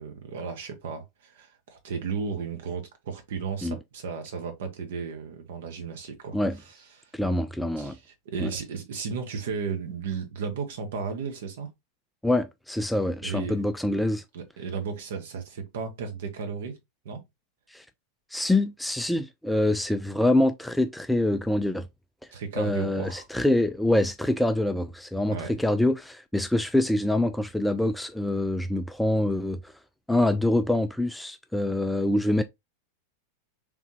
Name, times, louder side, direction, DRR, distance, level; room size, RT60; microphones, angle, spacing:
voice 1, 0.0-6.4 7.0-7.1 7.8-8.0 8.2-11.7 13.2-13.6 14.3-16.8 17.0-17.2 22.3-23.2 25.3-25.5, right 5 dB, 55° right, 1.0 m, -34 dB
voice 2, 7.1-8.0 8.4-8.5 12.2-14.2 17.7-17.8 18.3-21.9 22.6-29.7 30.1-32.4, left 1 dB, 5° left, 0.3 m, -25 dB
3.4 x 3.2 x 3.0 m
figure-of-eight pair, 90°, 0 cm